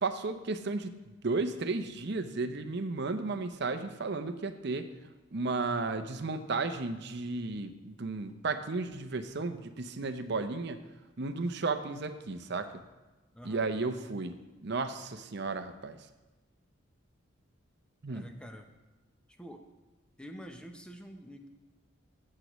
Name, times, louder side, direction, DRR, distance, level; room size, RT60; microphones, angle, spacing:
voice 1, 0.0-4.9 5.3-10.8 11.2-12.8 13.4-16.0 18.0-18.3, right 3 dB, 55° right, 9 dB, 0.6 m, -34 dB
voice 2, 13.3-13.7 18.1-18.7 19.3-19.7 20.2-21.5, equal, 5° left, 5 dB, 0.7 m, -47 dB
16.0 x 7.5 x 3.1 m, 1.1 s
head